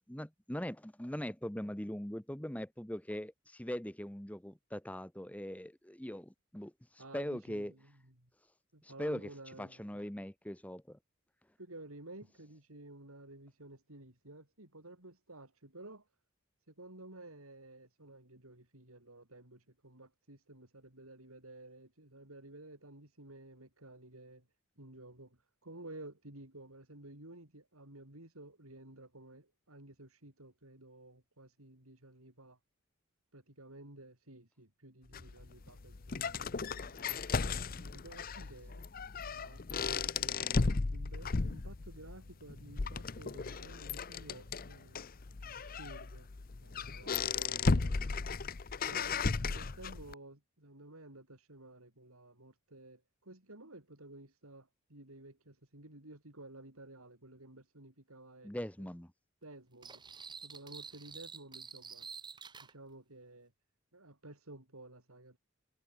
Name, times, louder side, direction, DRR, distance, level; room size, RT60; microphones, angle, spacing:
voice 1, 0.1-7.7 8.8-9.3 9.6-11.0 58.4-59.1, equal, 5° left, 1.0 m, -41 dB
voice 2, 7.0-7.9 8.2-8.3 8.7-9.8 11.6-16.0 16.7-24.5 24.8-32.6 33.3-37.2 37.8-38.8 39.3-45.1 45.7-46.3 46.6-48.1 48.9-58.5 58.8-58.9 59.4-60.0 60.4-62.1 62.6-63.5 63.9-65.4, right 2 dB, 85° right, 5.7 m, -53 dB
sound 1, 35.1-50.1, left 4 dB, 40° left, 0.6 m, -35 dB
sound 2, 59.8-62.7, right 6 dB, 20° right, 4.5 m, -49 dB
head